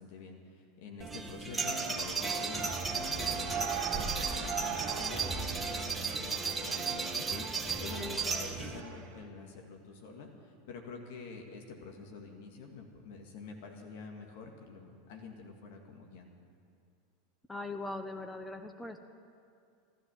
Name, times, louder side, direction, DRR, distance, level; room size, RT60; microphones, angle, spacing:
voice 1, 0.0-16.4, left 4 dB, 65° left, 2 dB, 1.9 m, -47 dB
sound 1, 1.0-8.8, right 4 dB, 15° right, 1.3 m, -34 dB
Shout / Cheering, 1.5-9.2, right 9 dB, 55° right, 2.4 m, -45 dB
voice 2, 17.5-19.0, left 2 dB, 10° left, 7 dB, 0.9 m, -40 dB
14.5 x 12.5 x 7.2 m, 2.4 s
hypercardioid pair, 90°, 0 cm